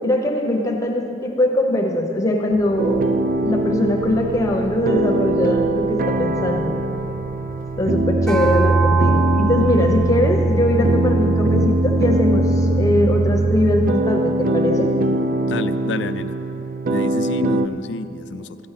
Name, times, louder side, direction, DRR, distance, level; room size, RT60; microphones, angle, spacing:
voice 1, 0.0-3.0 3.4-6.7 7.8-14.9, left 1 dB, 20° left, 1 dB, 0.8 m, -21 dB
sound 1, 2.5-10.3, equal, 80° right, 2.2 m, -40 dB
sound 2, 2.8-17.7, right 2 dB, 50° right, 0.5 m, -21 dB
sound 3, 8.3-12.9, right 5 dB, 5° left, 0.5 m, -28 dB
voice 2, 15.5-16.3 16.9-18.6, left 3 dB, 90° left, 11 dB, 0.5 m, -29 dB
13.0 x 9.5 x 5.8 m, 3.0 s
head